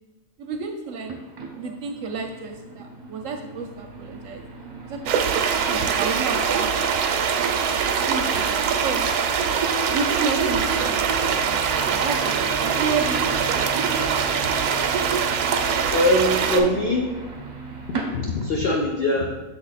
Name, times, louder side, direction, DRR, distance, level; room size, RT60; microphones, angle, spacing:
voice 1, 0.4-1.1 1.6-4.4 4.8-6.7 7.1-7.5 8.1-9.1 9.9-11.0 11.4-13.9 16.6-16.7, right 4 dB, 70° right, 4 dB, 0.8 m, -31 dB
sound 1, 1.0-18.6, right 3 dB, 40° right, 0.7 m, -38 dB
sound 2, 5.1-16.6, right 6 dB, 90° right, 1.1 m, -23 dB
voice 2, 15.9-17.1 17.9-19.4, left 1 dB, 65° left, 0 dB, 0.6 m, -22 dB
6.7 x 3.4 x 4.0 m, 1.2 s
omnidirectional pair, 1.6 m